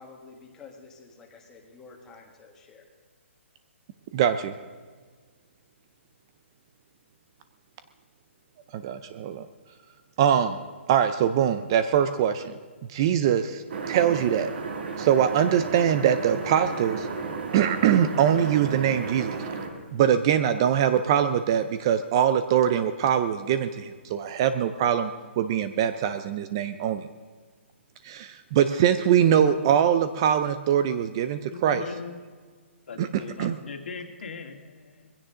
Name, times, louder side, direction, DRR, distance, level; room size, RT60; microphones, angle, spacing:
voice 1, 0.0-2.9, left 4 dB, 10° left, 0 dB, 1.6 m, -49 dB
voice 2, 4.1-4.5 8.7-9.5 10.2-10.6 10.9-12.6 12.9-14.5 15.0-17.1 17.5-19.4 19.9-27.1 28.0-31.8 33.0-33.6, right 9 dB, 20° right, 11 dB, 0.4 m, -23 dB
sound 1, 13.7-19.7, right 5 dB, 50° right, 2.5 m, -33 dB
voice 3, 31.4-32.2 32.9-35.1, left 5 dB, 55° left, 5 dB, 2.1 m, -39 dB
21.5 x 16.0 x 3.8 m, 1.5 s
hypercardioid pair, 175°, 7 cm